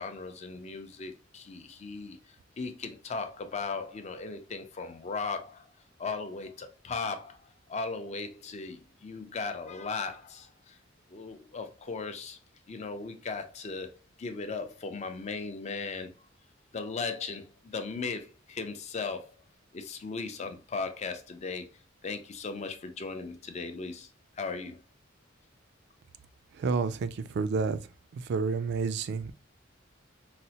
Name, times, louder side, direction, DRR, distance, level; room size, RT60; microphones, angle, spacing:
voice 1, 0.0-2.2 2.6-5.7 6.0-10.8 11.1-12.4 12.7-16.2 16.7-19.3 19.7-21.7 22.0-24.1 24.4-24.8, left 4 dB, 35° left, 0.4 m, -37 dB
voice 2, 26.5-27.8 28.1-29.3, right 4 dB, 60° right, 0.3 m, -30 dB
4.1 x 2.0 x 2.7 m
head